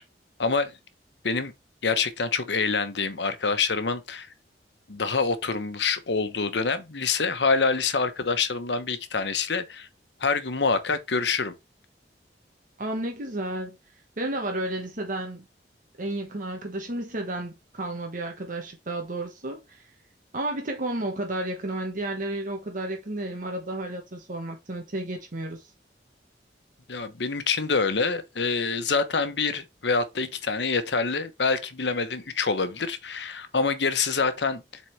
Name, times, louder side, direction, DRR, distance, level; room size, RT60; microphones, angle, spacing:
voice 1, 0.4-0.7 1.2-1.5 1.8-4.3 4.9-9.9 10.2-11.5 26.9-34.8, left 4 dB, 75° left, 1.0 m, -26 dB
voice 2, 12.8-13.8 14.2-15.5 16.0-19.8 20.3-25.7, right 1 dB, 50° right, 1.3 m, -32 dB
7.4 x 4.1 x 3.2 m
head